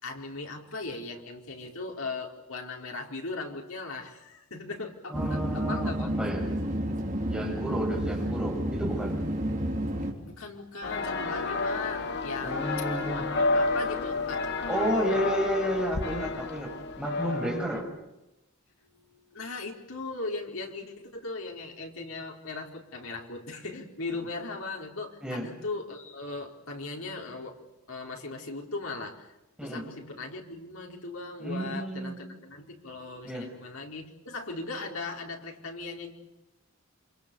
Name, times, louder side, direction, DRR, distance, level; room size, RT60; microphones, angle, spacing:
voice 1, 0.0-6.1 10.1-12.6 13.1-15.3 18.9-27.6 27.9-29.3 29.6-36.1, left 3 dB, 85° left, 1 dB, 4.5 m, -38 dB
voice 2, 5.1-6.5 7.3-9.2 12.4-13.3 14.7-17.9 25.2-25.5 29.6-29.9 31.4-32.2 33.2-33.5, right 1 dB, 5° right, -2 dB, 7.5 m, -31 dB
sound 1, 5.1-10.1, equal, 40° right, 3.8 m, -30 dB
sound 2, 10.8-17.8, left 3 dB, 55° left, 2.5 m, -30 dB
28.0 x 25.5 x 7.0 m, 0.95 s
head